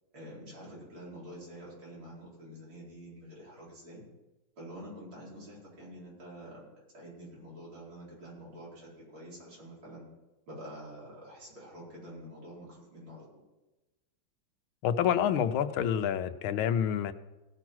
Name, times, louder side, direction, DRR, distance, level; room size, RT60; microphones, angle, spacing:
voice 1, 0.1-4.0 4.6-10.0 10.5-13.3, equal, 90° right, -7 dB, 5.4 m, -47 dB
voice 2, 14.8-17.1, left 9 dB, 85° left, 11 dB, 1.5 m, -28 dB
17.0 x 5.9 x 6.1 m, 1.1 s
omnidirectional pair, 2.2 m